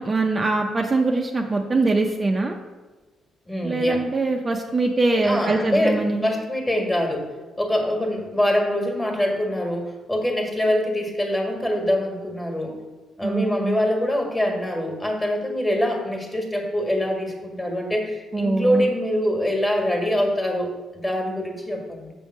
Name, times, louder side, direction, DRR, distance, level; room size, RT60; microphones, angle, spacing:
voice 1, 0.0-2.6 3.6-6.2 13.2-13.7 18.3-18.9, right 3 dB, 30° right, 2 dB, 0.6 m, -22 dB
voice 2, 3.5-4.0 5.2-7.3 7.6-12.8 13.2-22.1, left 1 dB, 15° left, 1 dB, 1.6 m, -24 dB
6.8 x 3.6 x 6.3 m, 1.2 s
cardioid pair, 90°, 0 cm